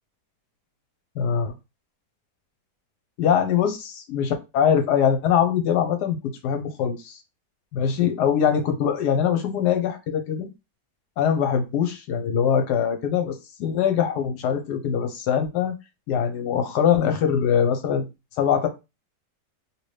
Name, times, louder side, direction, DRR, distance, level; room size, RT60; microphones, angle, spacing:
voice 1, 1.2-1.5 3.2-6.2 6.4-7.2 7.7-10.5 11.2-13.3 13.6-15.7 16.1-18.1 18.4-18.7, left 8 dB, 80° left, 1.2 m, -22 dB
2.9 x 2.7 x 3.1 m
omnidirectional pair, 1.7 m